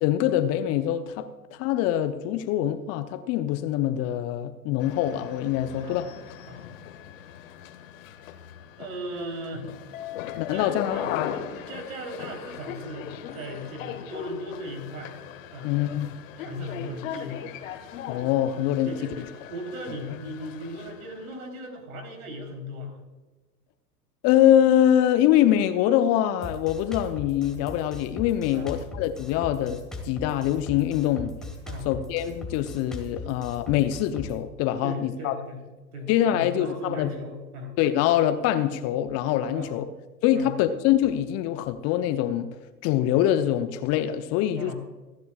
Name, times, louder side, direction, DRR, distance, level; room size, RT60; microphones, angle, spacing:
voice 1, 0.0-1.3 1.5-6.1 10.4-11.4 15.6-16.1 18.1-18.9 24.2-31.3 31.8-35.3 36.1-37.1 37.8-39.9 40.2-42.5 42.8-44.7, left 11 dB, 30° left, 10 dB, 0.8 m, -24 dB
sound 1, 4.8-21.4, left 9 dB, 55° left, 1.6 m, -39 dB
voice 2, 5.8-6.2 6.5-6.7 8.8-9.7 10.5-11.1 11.5-15.1 15.5-15.8 16.4-17.4 18.8-22.9 28.5-28.7 31.7-31.9 34.8-35.6 35.9-37.7 39.5-39.8 40.3-40.6 44.5-44.7, equal, 65° right, 4 dB, 3.9 m, -37 dB
Drum kit, 26.4-34.4, left 2 dB, ahead, 1.9 m, -39 dB
26.0 x 10.5 x 2.4 m, 1.2 s
figure-of-eight pair, 100°, 47 cm